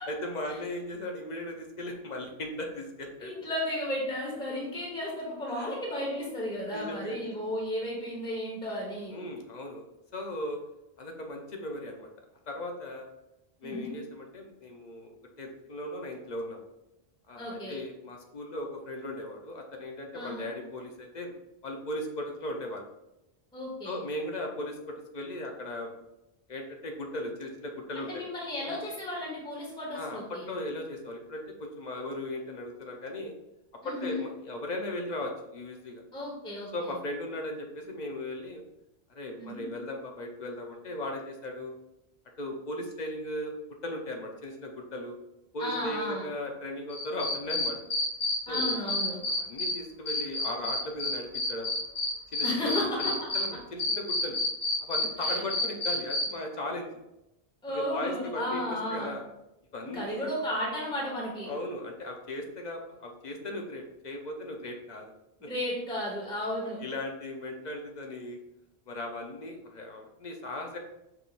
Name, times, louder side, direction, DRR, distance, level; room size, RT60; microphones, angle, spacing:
voice 1, 0.0-3.3 5.6-5.7 6.7-7.5 9.1-9.8 10.1-10.6 11.0-12.1 12.5-13.1 13.6-15.1 15.4-16.6 17.3-21.3 21.6-22.8 23.8-24.7 25.1-25.9 26.5-28.2 28.6-28.8 29.9-30.2 30.5-33.3 33.8-36.0 36.7-38.6 39.1-41.7 42.4-43.5 43.8-45.2 45.5-47.8 48.5-48.8 49.4-51.7 52.3-54.4 54.8-56.9 57.7-58.6 58.9-59.2 59.7-60.3 61.5-65.1 66.8-68.4 68.9-70.8, left 1 dB, 45° left, 2 dB, 0.8 m, -37 dB
voice 2, 3.2-9.2 13.6-13.9 17.4-17.8 20.1-20.5 23.5-24.0 27.9-30.5 33.8-34.2 36.1-36.9 39.4-39.6 45.6-46.3 48.5-49.2 52.4-53.0 55.2-55.4 57.6-59.1 59.8-61.5 65.5-66.8, left 1 dB, 5° left, -4 dB, 1.1 m, -34 dB
Cricket, 46.9-49.7 50.1-53.4 53.8-56.2, left 2 dB, 85° left, 1.5 m, -29 dB
5.8 x 3.6 x 2.5 m, 0.90 s
omnidirectional pair, 1.1 m